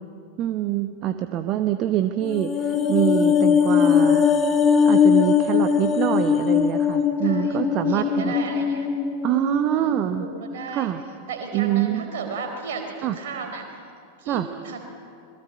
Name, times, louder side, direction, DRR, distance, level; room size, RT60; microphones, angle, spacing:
voice 1, 0.4-4.3 4.8-8.3 9.2-10.3 10.7-11.0 11.5-12.0 13.0-13.2 14.3-14.5, right 12 dB, 35° right, 9 dB, 1.0 m, -25 dB
sound 1, 2.2-10.7 11.0-11.1, left 7 dB, 25° left, 1.6 m, -21 dB
voice 2, 7.2-7.6 7.9-8.9 9.7-10.9 11.3-13.6 14.2-14.8, right 5 dB, 55° right, 4 dB, 4.2 m, -34 dB
26.5 x 21.0 x 8.1 m, 2.5 s
figure-of-eight pair, 90°, 0 cm